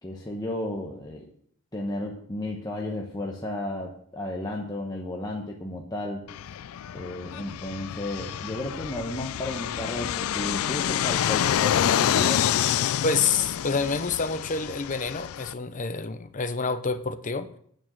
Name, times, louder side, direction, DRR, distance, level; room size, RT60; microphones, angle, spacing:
voice 1, 0.0-1.2 1.7-6.3 6.9-12.5, left 1 dB, 20° left, 1.1 m, -33 dB
Fixed-wing aircraft airplane, 6.3-15.5, left 10 dB, 85° left, 0.3 m, -27 dB
voice 2, 13.0-17.5, left 4 dB, 40° left, 0.7 m, -27 dB
9.1 x 7.2 x 7.3 m
head